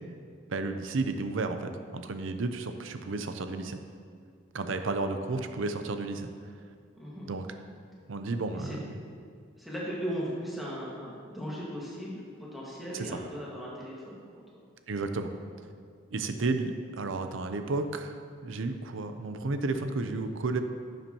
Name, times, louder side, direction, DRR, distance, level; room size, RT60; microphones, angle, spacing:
voice 1, 0.5-3.8 4.5-6.3 7.3-7.5 8.1-9.0 12.9-13.1 14.9-15.3 16.1-18.2 18.4-20.6, right 3 dB, 75° right, 8 dB, 0.6 m, -32 dB
voice 2, 6.9-7.3 8.5-8.8 9.6-14.6, equal, ahead, -7 dB, 1.7 m, -38 dB
10.5 x 7.3 x 2.9 m, 2.2 s
head